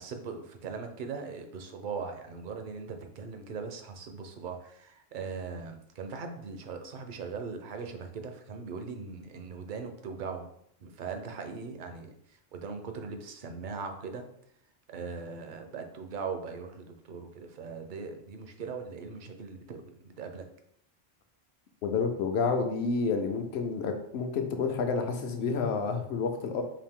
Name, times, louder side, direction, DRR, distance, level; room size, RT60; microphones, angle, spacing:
voice 1, 0.0-10.5 10.8-14.2 14.9-20.5, right 5 dB, 55° right, 6 dB, 0.7 m, -40 dB
voice 2, 21.8-26.6, left 4 dB, 70° left, 5 dB, 0.9 m, -29 dB
4.9 x 2.6 x 3.6 m, 0.72 s
omnidirectional pair, 1.1 m